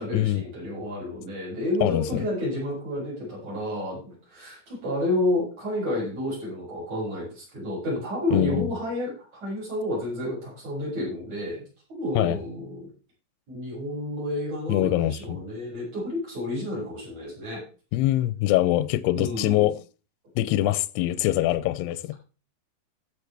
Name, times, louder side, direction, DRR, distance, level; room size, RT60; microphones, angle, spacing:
voice 1, 0.0-11.6 11.9-12.9 13.5-17.6 19.1-19.7, left 1 dB, 40° right, 7.8 m, -30 dB
voice 2, 1.8-2.2 8.3-8.7 12.2-12.4 14.7-15.4 17.9-19.8 20.4-22.1, left 14 dB, 80° left, 2.5 m, -23 dB
16.5 x 6.9 x 3.4 m
omnidirectional pair, 5.0 m